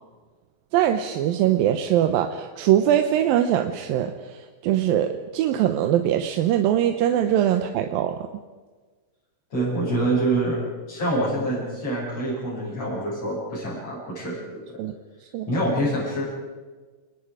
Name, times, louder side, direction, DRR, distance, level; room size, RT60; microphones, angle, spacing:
voice 1, 0.7-4.1 4.6-8.2 14.8-14.9 15.3-15.5, right 11 dB, 70° right, 7 dB, 2.5 m, -22 dB
voice 2, 9.5-10.6 10.9-14.6 15.5-16.3, right 1 dB, 40° left, -9 dB, 8.2 m, -26 dB
29.5 x 21.5 x 5.0 m, 1.4 s
omnidirectional pair, 4.7 m